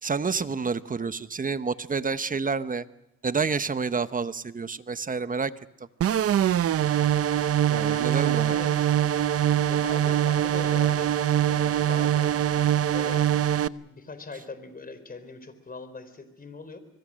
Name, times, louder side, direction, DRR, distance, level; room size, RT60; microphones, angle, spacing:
voice 1, 0.0-2.8 3.2-5.5 7.7-8.5, right 5 dB, 25° right, 13 dB, 1.0 m, -29 dB
sound 1, 6.0-13.7, right 10 dB, 50° right, 0.7 m, -23 dB
voice 2, 7.8-9.3 9.7-11.1 11.5-12.4 12.9-13.4 13.7-16.8, left 3 dB, 30° left, 11 dB, 4.1 m, -41 dB
25.0 x 21.5 x 6.4 m, 0.92 s
cardioid pair, 90°, 30 cm